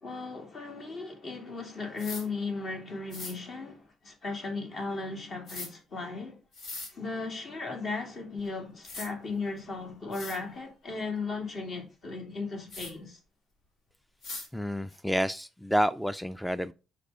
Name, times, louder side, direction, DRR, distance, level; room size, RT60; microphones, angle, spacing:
voice 1, 0.0-6.4 6.9-13.2, left 3 dB, 55° left, 2.6 m, -36 dB
sound 1, 2.0-2.2 3.1-3.3 5.5-5.7 6.5-6.9 8.4-8.5 8.8-9.1 9.7-9.8 10.1-10.4 12.7-12.9 14.2-14.5, left 3 dB, 75° left, 2.2 m, -40 dB
voice 2, 14.5-16.7, equal, ahead, 0.3 m, -29 dB
6.6 x 4.9 x 5.4 m
cardioid pair, 90°, 0 cm